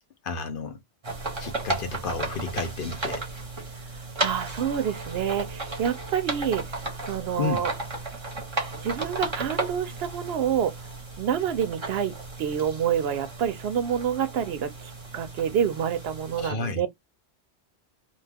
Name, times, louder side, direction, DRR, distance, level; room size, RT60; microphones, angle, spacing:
voice 1, 0.2-0.8 1.4-3.2 7.4-7.7 16.3-16.8, left 4 dB, 60° left, 0.7 m, -31 dB
sound 1, 1.0-16.5, right 2 dB, 30° right, 0.8 m, -34 dB
voice 2, 4.2-7.7 8.8-10.8 11.2-16.9, right 8 dB, 70° right, 0.8 m, -28 dB
2.4 x 2.2 x 3.3 m
omnidirectional pair, 1.1 m